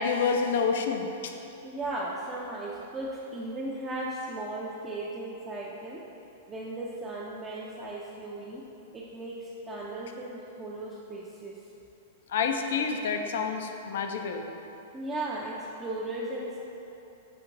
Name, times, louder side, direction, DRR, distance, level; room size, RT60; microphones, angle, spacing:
voice 1, 0.0-1.3 12.3-14.4, left 5 dB, 65° left, 5 dB, 0.3 m, -28 dB
voice 2, 1.6-6.0 6.5-8.6 8.9-11.6 14.9-16.6, right 2 dB, 20° right, -6 dB, 0.4 m, -36 dB
5.8 x 2.9 x 2.6 m, 3.0 s
hypercardioid pair, 105°, 0 cm